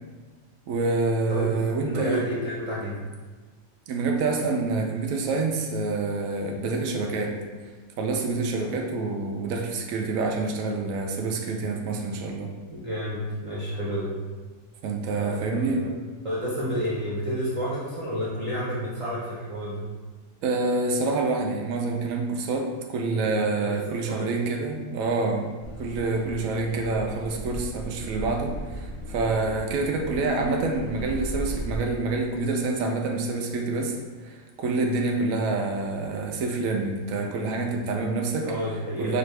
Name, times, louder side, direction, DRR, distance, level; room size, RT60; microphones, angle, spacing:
voice 1, 0.7-2.2 3.9-7.4 8.0-12.5 14.8-15.9 20.4-25.5 25.8-34.0 34.2-38.5 39.0-39.2, right 3 dB, 80° right, 1 dB, 1.0 m, -27 dB
voice 2, 1.8-3.0 12.7-14.1 15.1-15.9 16.2-19.9 23.5-24.3 38.4-39.2, equal, 30° right, -7 dB, 0.7 m, -30 dB
Car passing by / Accelerating revving vroom, 25.6-31.8, right 1 dB, 75° left, 1.2 m, -36 dB
5.2 x 2.6 x 3.2 m, 1.4 s
omnidirectional pair, 1.4 m